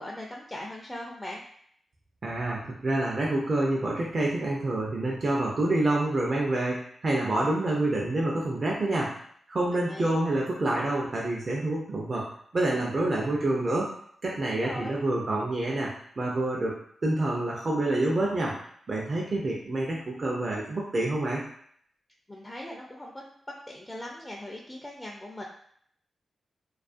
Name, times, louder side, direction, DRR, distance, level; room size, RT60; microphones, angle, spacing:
voice 1, 0.0-1.4 9.7-10.2 14.5-15.0 22.3-23.2 23.7-25.4, left 1 dB, 20° left, -2 dB, 0.4 m, -40 dB
voice 2, 2.2-9.2 9.5-13.9 14.2-18.5 18.9-21.4, right 2 dB, 50° right, -3 dB, 0.5 m, -27 dB
2.3 x 2.3 x 2.5 m, 0.64 s
cardioid pair, 50°, 0 cm